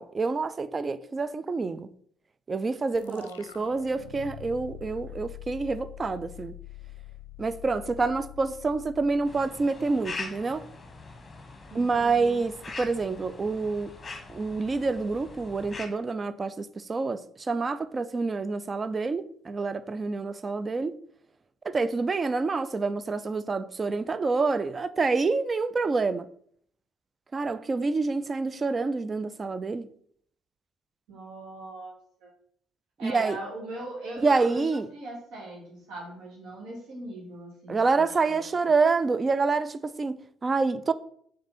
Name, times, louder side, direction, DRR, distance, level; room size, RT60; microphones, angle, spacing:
voice 1, 0.0-1.9 2.5-3.3 3.6-6.6 7.4-10.7 11.7-13.9 14.3-21.0 21.6-26.3 27.3-29.9 33.0-33.4 34.2-34.9 37.7-40.9, right 4 dB, 30° right, 0.4 m, -27 dB
sound 1, 2.9-10.2, left 12 dB, 75° left, 0.4 m, -45 dB
voice 2, 3.0-3.7 11.7-12.4 31.1-32.3 33.0-38.7, right 1 dB, 60° right, 2.2 m, -41 dB
sound 2, 9.3-15.9, left 3 dB, 25° left, 1.2 m, -42 dB
5.9 x 3.8 x 4.2 m
figure-of-eight pair, 45°, 0 cm